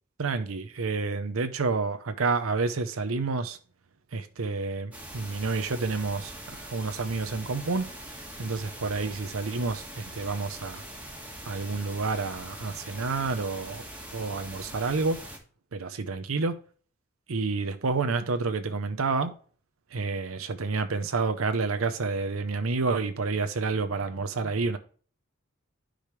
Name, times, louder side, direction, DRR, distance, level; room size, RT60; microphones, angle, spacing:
voice 1, 0.2-3.6 4.1-10.8 11.4-13.8 14.1-15.2 15.7-16.6 17.3-19.3 19.9-24.8, right 4 dB, 90° right, 0.7 m, -29 dB
sound 1, 4.9-15.4, right 1 dB, 5° right, 1.5 m, -42 dB
10.0 x 5.0 x 3.2 m
head